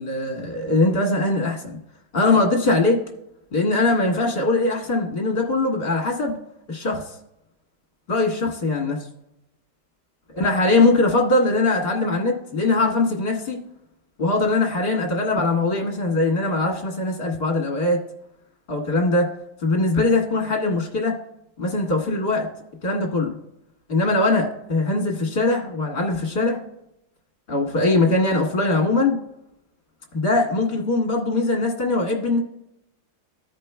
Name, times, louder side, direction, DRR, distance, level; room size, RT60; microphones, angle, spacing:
voice 1, 0.0-1.8 2.1-3.0 3.5-6.3 6.7-7.0 8.1-9.0 10.3-13.6 14.2-18.0 18.7-19.3 19.6-21.1 21.6-22.5 22.8-23.3 23.9-26.6 27.5-29.2 30.1-32.4, left 2 dB, 30° left, 0 dB, 1.7 m, -21 dB
15.0 x 5.2 x 2.3 m, 0.84 s
omnidirectional pair, 2.2 m